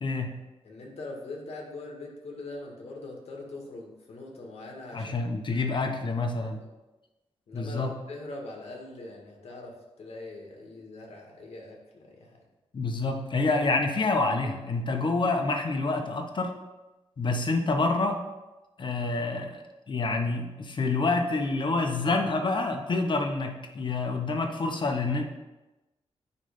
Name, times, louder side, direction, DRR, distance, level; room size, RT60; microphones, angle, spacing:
voice 1, 0.0-0.4 4.9-6.6 7.5-7.9 12.7-16.6 17.2-18.2 18.8-19.6 19.9-25.2, left 3 dB, 50° left, 4 dB, 1.0 m, -27 dB
voice 2, 0.6-5.2 5.5-5.7 6.6-6.7 7.5-12.4, left 2 dB, 70° left, -1 dB, 2.0 m, -42 dB
9.5 x 3.3 x 5.4 m, 1.1 s
wide cardioid pair, 100°, 11 cm